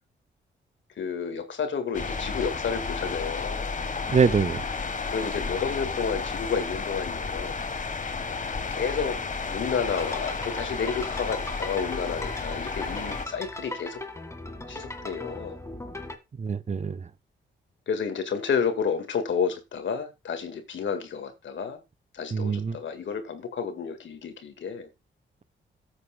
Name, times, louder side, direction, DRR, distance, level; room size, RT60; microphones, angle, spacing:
voice 1, 1.0-3.7 5.1-7.6 8.7-9.2 9.5-14.0 14.7-15.6 17.9-21.8 22.1-24.9, left 6 dB, 65° left, 1.9 m, -31 dB
sound 1, 1.9-13.3, left 4 dB, 40° left, 1.5 m, -32 dB
voice 2, 4.1-4.6 16.4-17.0 22.3-22.8, right 5 dB, 35° right, 0.8 m, -24 dB
sound 2, 9.9-16.2, left 2 dB, 15° left, 2.0 m, -38 dB
15.5 x 8.4 x 2.3 m
cardioid pair, 65°, 21 cm